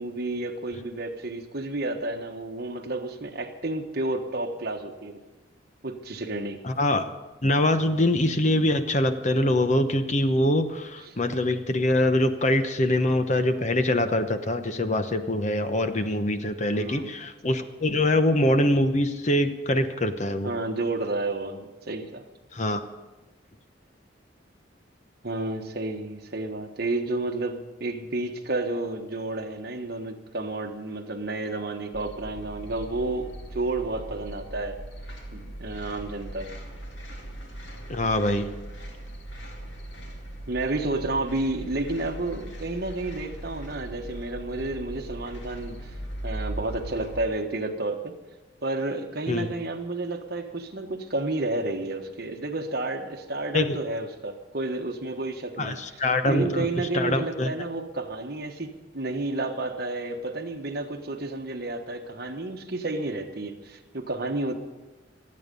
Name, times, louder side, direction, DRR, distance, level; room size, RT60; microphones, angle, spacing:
voice 1, 0.0-5.2 5.8-6.6 11.1-11.2 16.7-17.1 20.4-22.2 25.2-34.8 35.3-36.5 40.5-45.9 46.2-48.2 48.6-55.8 56.2-64.5, right 2 dB, 55° right, 5 dB, 1.4 m, -31 dB
voice 2, 6.6-7.1 7.4-20.5 22.5-22.8 37.9-38.5 49.3-49.5 53.5-53.8 55.6-56.7 56.9-57.5, left 1 dB, 40° left, 9 dB, 0.9 m, -24 dB
sound 1, 31.9-47.2, right 1 dB, 70° left, 2.4 m, -39 dB
26.0 x 8.7 x 5.4 m, 1.1 s
head